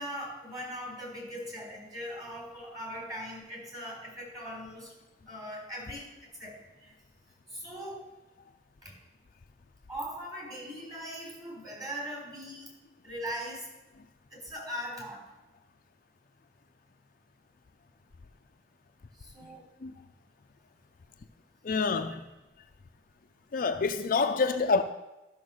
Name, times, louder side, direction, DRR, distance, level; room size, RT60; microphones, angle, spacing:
voice 1, 0.0-4.9 5.3-6.1 6.4-6.9 7.5-8.1 8.8-8.9 9.9-12.7 13.0-13.7 14.3-15.2 19.2-19.6 22.1-22.2, equal, 20° right, 4.0 m, -40 dB
voice 2, 21.6-22.2 23.5-24.8, left 4 dB, 50° left, 0.5 m, -27 dB
12.5 x 6.4 x 6.4 m
head